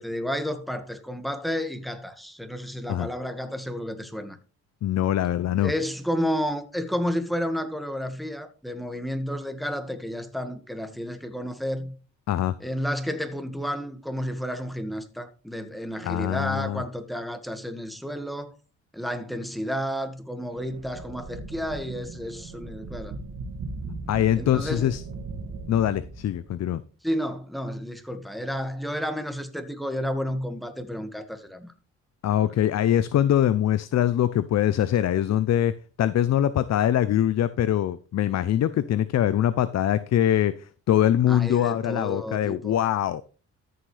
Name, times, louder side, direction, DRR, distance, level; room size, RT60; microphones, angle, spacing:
voice 1, 0.0-4.4 5.6-11.9 12.6-18.5 18.9-23.2 24.4-24.9 27.0-31.7 32.4-32.6 41.3-42.8, equal, ahead, 1.8 m, -31 dB
voice 2, 4.8-5.7 12.3-12.5 16.0-16.8 24.1-25.0 25.7-26.8 32.2-35.7 36.0-43.2, left 11 dB, 60° left, 0.7 m, -23 dB
sound 1, 20.5-26.7, right 3 dB, 60° right, 2.7 m, -38 dB
14.0 x 6.3 x 3.4 m
cardioid pair, 90°, 30 cm